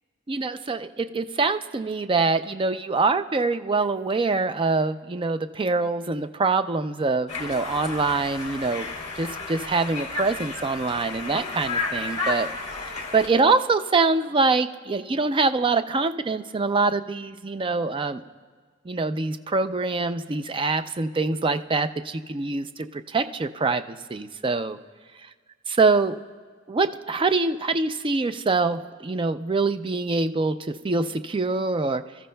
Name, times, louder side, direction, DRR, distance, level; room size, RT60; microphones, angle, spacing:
voice 1, 0.3-12.5 13.1-18.2 18.9-24.8 25.7-26.2 26.7-30.6 30.8-32.0, right 3 dB, 25° right, 10 dB, 0.4 m, -24 dB
Conversation, 7.3-13.3, left 3 dB, 35° left, 1.7 m, -32 dB
29.0 x 14.0 x 2.2 m, 1.5 s
head